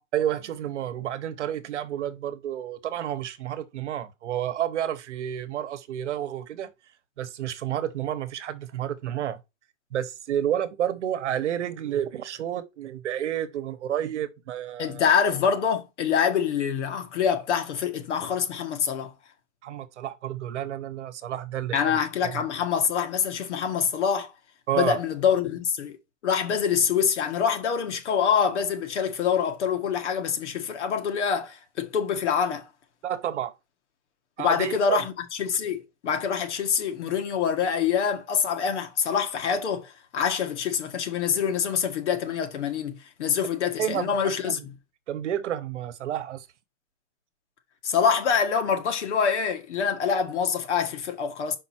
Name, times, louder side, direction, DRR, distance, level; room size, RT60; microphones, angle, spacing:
voice 1, 0.1-6.7 7.2-9.4 9.9-15.0 19.6-22.4 24.7-25.0 33.0-33.5 34.4-35.0 43.8-44.2 44.5-44.6 45.1-46.5, right 10 dB, 65° right, 1.0 m, -30 dB
voice 2, 14.8-19.1 21.7-24.3 24.8-26.0 26.2-32.7 34.4-44.7 47.8-51.6, left 7 dB, 65° left, 1.6 m, -25 dB
5.7 x 5.3 x 4.3 m
hypercardioid pair, 175°, 38 cm